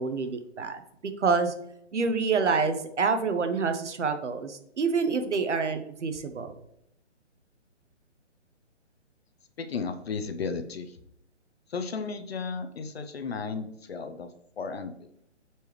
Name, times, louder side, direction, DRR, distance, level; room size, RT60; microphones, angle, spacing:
voice 1, 0.0-1.5 1.9-6.5, right 4 dB, 70° right, 8 dB, 1.2 m, -27 dB
voice 2, 9.6-11.0 11.7-15.1, left 5 dB, 55° left, 9 dB, 0.8 m, -34 dB
8.1 x 4.6 x 3.2 m, 0.74 s
hypercardioid pair, 155°, 36 cm